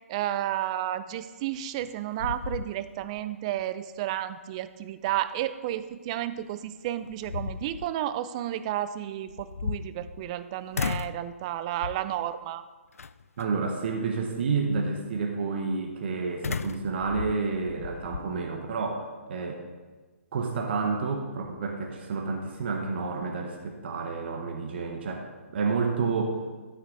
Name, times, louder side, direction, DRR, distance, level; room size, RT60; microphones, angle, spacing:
voice 1, 0.1-12.6, right 12 dB, 25° right, 13 dB, 0.4 m, -32 dB
sound 1, 1.6-1.9 2.2-3.2 3.6-3.7 6.4-6.5 7.0-7.9 9.3-10.4 10.7-11.3 11.8-12.2 13.0-13.4 16.4-18.3, left 5 dB, 85° left, 0.4 m, -34 dB
voice 2, 13.4-19.6 20.3-25.3 25.5-26.4, right 4 dB, 50° right, 2 dB, 1.2 m, -30 dB
12.5 x 6.3 x 4.0 m, 1.3 s
hypercardioid pair, 150°, 8 cm